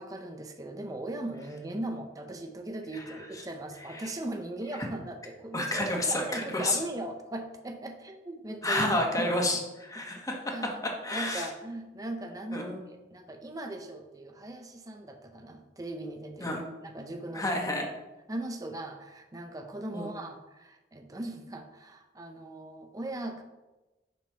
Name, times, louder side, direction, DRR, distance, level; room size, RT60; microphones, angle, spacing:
voice 1, 0.0-9.4 10.0-10.1 10.5-10.8 11.1-17.5 18.3-23.4, right 1 dB, 20° right, 4 dB, 0.6 m, -39 dB
voice 2, 5.5-6.8 8.6-11.5 12.5-12.8 16.4-16.6 17.3-17.9 19.9-20.1, left 1 dB, 20° left, 1 dB, 1.4 m, -30 dB
7.6 x 5.4 x 5.6 m, 1.1 s
head